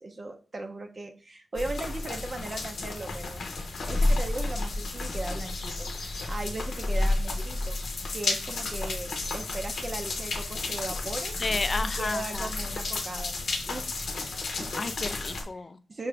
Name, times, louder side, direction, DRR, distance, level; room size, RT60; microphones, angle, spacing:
voice 1, 0.0-3.4 3.9-7.8 8.1-11.4 11.8-14.0 14.5-14.8 15.6-16.1, right 2 dB, 40° right, 5 dB, 0.5 m, -38 dB
sound 1, 1.5-15.4, left 2 dB, 80° left, 0.8 m, -31 dB
voice 2, 11.4-12.5 14.8-15.8, left 3 dB, 40° left, 12 dB, 0.4 m, -32 dB
5.6 x 2.5 x 3.3 m, 0.39 s
wide cardioid pair, 100°, 0 cm